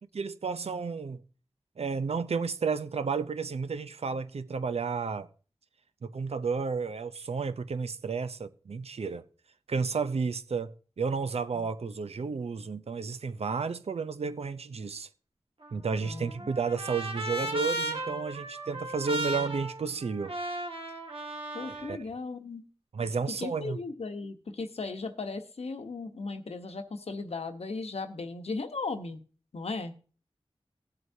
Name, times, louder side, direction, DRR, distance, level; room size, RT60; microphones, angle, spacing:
voice 1, 0.1-1.2 1.8-5.3 6.0-9.3 9.7-15.1 15.7-20.3 21.7-22.0 22.9-23.8, right 5 dB, 85° right, 0.6 m, -32 dB
Trumpet, 15.6-21.9, right 1 dB, 65° right, 1.6 m, -36 dB
voice 2, 16.0-16.5 21.5-22.6 23.4-29.2 29.5-29.9, left 3 dB, 85° left, 1.0 m, -37 dB
18.0 x 7.8 x 2.7 m
wide cardioid pair, 75°, 10 cm